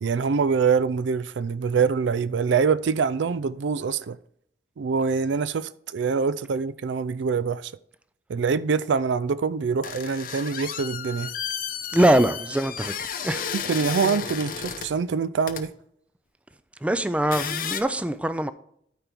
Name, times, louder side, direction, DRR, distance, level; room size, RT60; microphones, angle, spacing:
voice 1, 0.0-4.2 4.8-7.7 8.3-11.3 13.7-15.7, right 5 dB, 85° right, 0.4 m, -24 dB
sound 1, 9.8-14.9 15.5-15.6 17.2-17.8, left 7 dB, 50° left, 0.7 m, -33 dB
voice 2, 11.9-13.5 16.8-18.5, right 1 dB, 5° right, 0.3 m, -23 dB
12.5 x 4.5 x 3.5 m
head